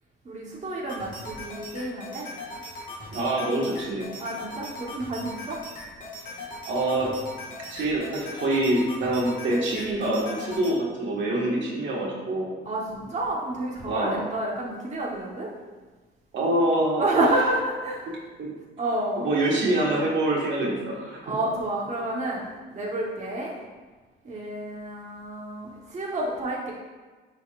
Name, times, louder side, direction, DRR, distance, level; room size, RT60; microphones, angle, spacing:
voice 1, 0.2-2.3 4.2-5.6 12.6-15.5 17.0-18.0 18.8-19.3 21.2-23.5 24.2-26.7, right 1 dB, 35° right, -4 dB, 1.2 m, -29 dB
sound 1, 0.9-10.7, left 2 dB, 40° left, 1.7 m, -39 dB
voice 2, 3.1-4.1 6.6-7.1 7.7-12.5 13.9-14.2 16.3-17.0 18.0-18.1 18.4-18.5 19.2-21.3, right 1 dB, 70° right, -3 dB, 1.7 m, -25 dB
10.0 x 4.0 x 2.5 m, 1.3 s
cardioid pair, 90°, 20 cm